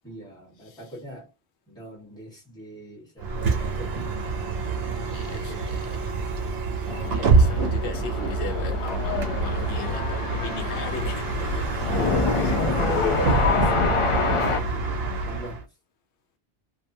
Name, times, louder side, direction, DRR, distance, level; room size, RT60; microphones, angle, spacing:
voice 1, 0.0-1.3 1.7-4.2 5.0-6.1 11.9-14.6 15.2-15.6, equal, 5° left, 1.2 m, -38 dB
voice 2, 0.6-0.9 5.1-6.1 6.8-11.7 12.3-12.6 14.4-14.6, left 5 dB, 90° left, 0.9 m, -38 dB
Bus, 3.2-15.6, right 3 dB, 70° right, 0.9 m, -26 dB
sound 1, 6.9-14.6, left 4 dB, 45° left, 0.4 m, -27 dB
2.7 x 2.3 x 2.6 m
omnidirectional pair, 1.1 m